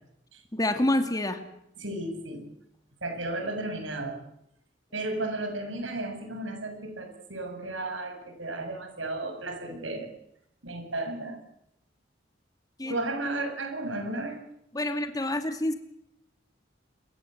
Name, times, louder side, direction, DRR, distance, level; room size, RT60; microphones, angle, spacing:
voice 1, 0.5-1.4 12.8-13.0 14.7-15.7, left 1 dB, 20° left, 7 dB, 2.6 m, -27 dB
voice 2, 1.8-2.5 3.0-4.2 4.9-10.1 10.6-11.4 12.9-14.4 14.9-15.1, right 2 dB, 85° right, 5 dB, 7.8 m, -34 dB
27.5 x 22.5 x 8.1 m, 0.78 s
head